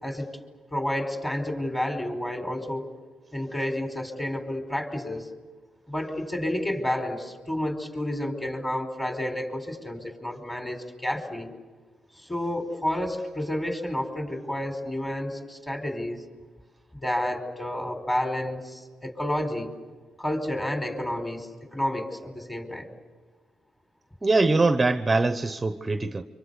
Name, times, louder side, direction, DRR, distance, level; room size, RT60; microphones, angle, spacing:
voice 1, 0.7-2.9 3.3-5.3 5.9-11.5 12.2-16.2 17.0-19.7 20.2-22.9, left 1 dB, 15° left, 5 dB, 4.8 m, -30 dB
voice 2, 24.2-26.2, right 3 dB, 20° right, 10 dB, 0.9 m, -22 dB
26.0 x 26.0 x 8.3 m, 1.3 s
cardioid pair, 90°, 0 cm